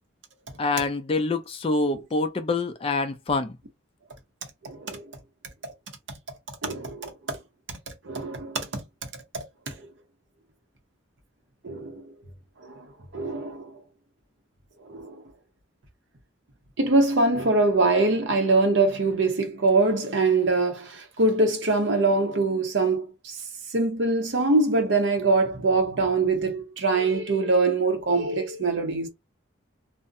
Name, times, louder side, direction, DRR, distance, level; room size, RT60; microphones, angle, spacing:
voice 1, 0.6-3.6, left 3 dB, 30° left, 0.4 m, -26 dB
voice 2, 4.6-5.0 6.6-7.4 8.0-8.8 9.7-9.8 11.6-12.0 12.6-12.9 13.1-13.7 14.9-15.2 16.8-23.4 23.7-29.1, right 3 dB, 75° right, 0.7 m, -23 dB
2.5 x 2.0 x 2.5 m
head